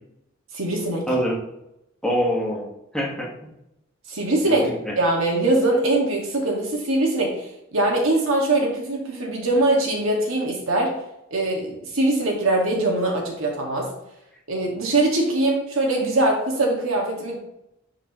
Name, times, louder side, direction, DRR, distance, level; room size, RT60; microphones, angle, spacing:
voice 1, 0.5-1.1 4.1-4.7 5.0-10.9 11.3-13.9 14.5-17.4, right 2 dB, 90° right, 0 dB, 2.1 m, -22 dB
voice 2, 1.1-1.4 2.0-2.7 2.9-3.5 4.4-4.9, equal, 5° left, -3 dB, 1.6 m, -25 dB
10.0 x 4.9 x 3.1 m, 0.86 s
head